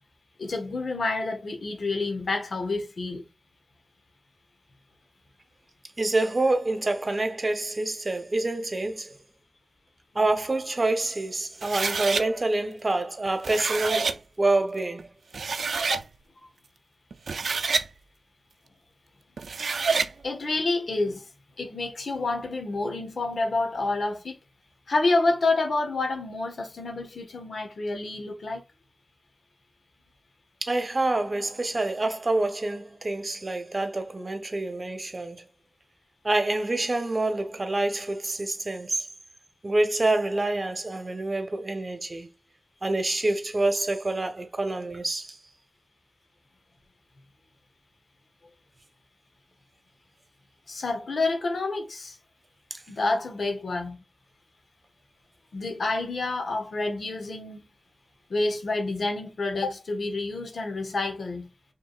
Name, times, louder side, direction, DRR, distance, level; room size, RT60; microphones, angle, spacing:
voice 1, 0.4-3.2 15.9-16.0 20.2-21.3 21.6-24.4 24.9-28.6 50.7-52.2 52.9-54.0 55.5-57.7 58.3-61.5, left 3 dB, 80° left, 1.4 m, -28 dB
voice 2, 6.0-9.2 10.1-15.1 17.5-17.6 30.6-35.4 36.2-39.1 39.6-42.3 42.8-45.4 52.7-52.8, right 2 dB, 45° right, 1.2 m, -27 dB
sound 1, 11.6-12.2 13.3-14.2 15.0-15.1 15.3-16.0 17.1-17.9 19.4-20.1, right 4 dB, 90° right, 0.4 m, -27 dB
5.3 x 3.7 x 2.4 m
cardioid pair, 40°, 0 cm